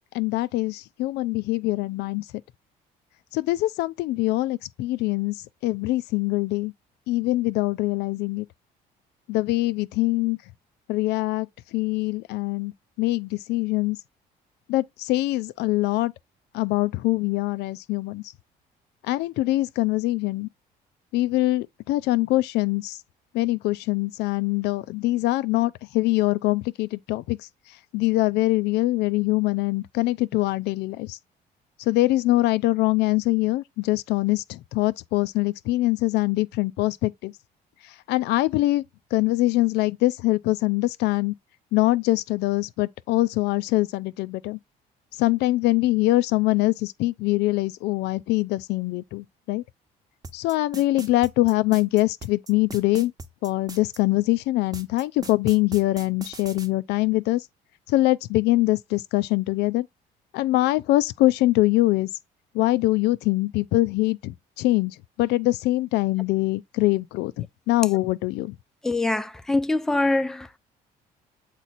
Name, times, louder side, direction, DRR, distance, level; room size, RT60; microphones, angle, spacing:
voice 1, 0.1-2.2 3.3-5.4 5.6-6.7 7.1-8.5 9.3-10.4 10.9-12.7 13.0-14.0 14.7-16.1 16.5-18.2 19.0-20.5 21.1-23.0 23.3-27.4 27.9-31.2 31.8-37.3 38.1-38.8 39.1-41.3 41.7-44.6 45.2-49.6 50.3-53.1 53.4-57.4 57.9-59.9 60.3-62.1 62.5-68.6, left 18 dB, 80° left, 0.4 m, -23 dB
sound 1, 50.2-54.0 54.7-56.7, right 3 dB, 20° right, 0.9 m, -39 dB
voice 2, 68.8-70.6, left 2 dB, 5° left, 0.4 m, -24 dB
8.2 x 3.0 x 4.0 m
cardioid pair, 110°, 17 cm